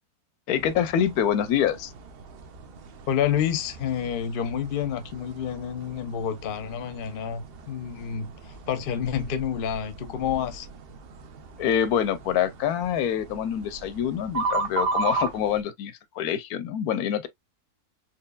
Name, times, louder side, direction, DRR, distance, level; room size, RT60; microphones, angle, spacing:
voice 1, 0.5-1.9 11.6-17.3, left 9 dB, 75° left, 1.0 m, -26 dB
sound 1, 0.6-15.6, right 3 dB, 60° right, 0.6 m, -36 dB
voice 2, 3.1-10.7, left 9 dB, 50° left, 0.7 m, -29 dB
4.4 x 3.1 x 2.3 m
omnidirectional pair, 1.7 m